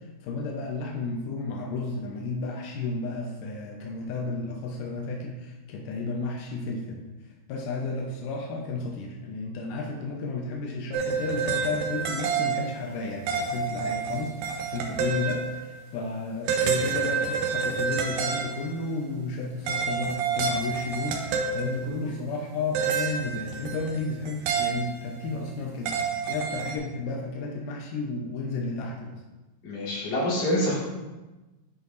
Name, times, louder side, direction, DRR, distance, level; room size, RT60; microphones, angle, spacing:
voice 1, 0.0-7.0 7.5-29.2, left 3 dB, 85° left, 0 dB, 1.8 m, -32 dB
sound 1, 10.9-13.0 13.3-15.8 16.5-18.7 19.7-22.1 22.8-24.0 24.3-25.3 25.9-26.8, right 5 dB, 75° right, 2.1 m, -29 dB
voice 2, 29.6-30.8, left 1 dB, 50° left, -6 dB, 2.6 m, -26 dB
9.6 x 6.3 x 2.5 m, 1.1 s
omnidirectional pair, 4.7 m